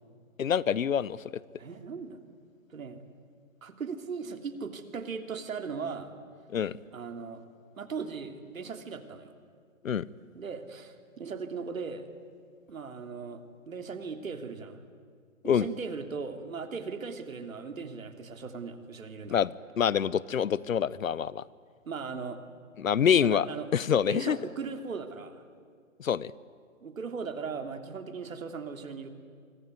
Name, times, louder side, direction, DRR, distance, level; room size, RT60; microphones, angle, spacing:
voice 1, 0.4-1.2 6.5-6.8 9.8-10.1 15.4-15.7 19.3-19.5 19.8-21.4 22.8-23.5 23.7-24.4 26.0-26.3, left 8 dB, 75° left, 21 dB, 0.9 m, -26 dB
voice 2, 1.6-2.2 2.7-3.0 3.6-6.1 6.9-7.4 7.8-9.3 10.3-12.1 12.7-14.8 15.4-19.5 21.8-22.4 23.0-23.7 24.0-25.4 26.8-29.1, right 5 dB, 75° right, 7 dB, 3.1 m, -38 dB
25.0 x 24.0 x 9.6 m, 2.1 s
hypercardioid pair, 160°, 41 cm